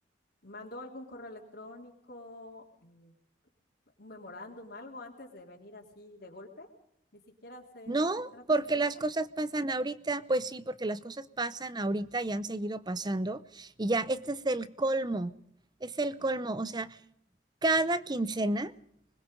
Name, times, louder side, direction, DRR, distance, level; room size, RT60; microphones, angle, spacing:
voice 1, 0.4-3.1 4.0-6.7 7.1-8.1 8.3-8.4 8.7-9.0, left 2 dB, 60° left, -3 dB, 3.3 m, -47 dB
voice 2, 7.9-15.3 15.8-17.0 17.6-18.7, right 2 dB, 25° right, 15 dB, 0.7 m, -31 dB
26.0 x 21.0 x 5.3 m, 0.73 s
head